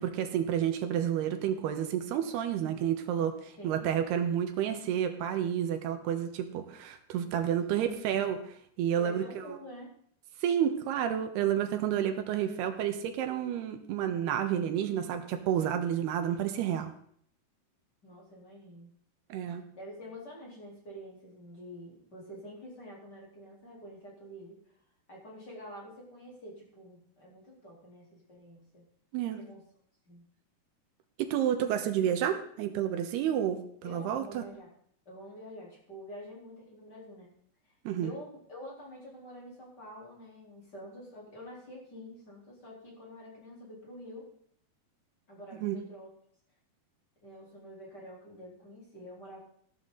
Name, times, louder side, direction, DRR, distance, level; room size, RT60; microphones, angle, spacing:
voice 1, 0.0-9.6 10.4-16.9 19.3-19.6 29.1-29.4 31.2-34.4 37.8-38.1 45.5-45.8, right 9 dB, 85° right, 7 dB, 3.2 m, -30 dB
voice 2, 3.5-4.0 7.7-8.1 9.0-9.9 18.0-18.9 19.4-24.6 25.1-28.9 29.2-29.6 30.1-30.3 33.8-34.7 35.1-37.3 38.0-44.3 45.3-46.1 47.2-49.4, equal, 25° left, -4 dB, 4.0 m, -47 dB
15.5 x 12.0 x 4.0 m, 0.62 s
omnidirectional pair, 4.6 m